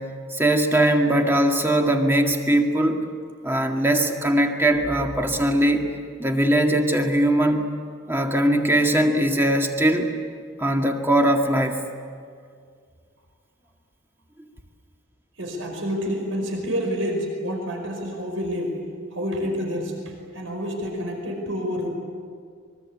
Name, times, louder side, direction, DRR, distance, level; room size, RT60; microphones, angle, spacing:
voice 1, 0.0-3.0 3.4-5.9 6.2-7.7 8.1-10.1 10.6-11.8, right 1 dB, 10° right, 2 dB, 1.9 m, -20 dB
voice 2, 15.4-18.7 19.1-19.9 20.3-21.9, equal, 80° right, 2 dB, 5.2 m, -28 dB
25.0 x 23.0 x 8.7 m, 2.1 s
head